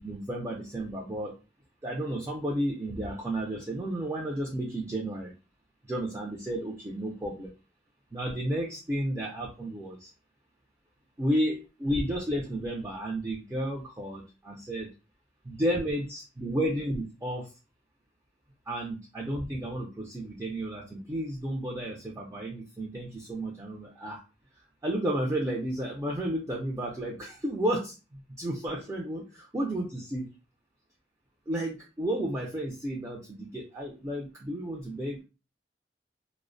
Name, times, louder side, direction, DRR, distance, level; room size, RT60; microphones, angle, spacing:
voice 1, 0.0-1.4 1.8-5.3 5.8-7.5 8.1-10.1 11.2-14.9 15.4-17.5 18.7-24.2 24.8-30.3 31.5-35.2, right 1 dB, 15° right, -3 dB, 0.4 m, -32 dB
2.4 x 2.0 x 2.5 m, 0.31 s
head